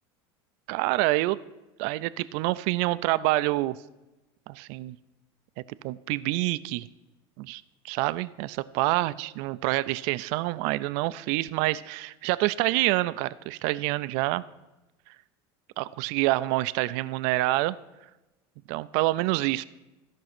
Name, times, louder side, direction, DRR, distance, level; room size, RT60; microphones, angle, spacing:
voice 1, 0.7-1.4 1.8-3.8 4.5-5.0 5.8-6.9 7.4-14.4 15.8-17.8 18.7-19.6, right 18 dB, 65° right, 17 dB, 0.4 m, -27 dB
13.5 x 5.4 x 5.9 m, 1.0 s
supercardioid pair, 100°, 13 cm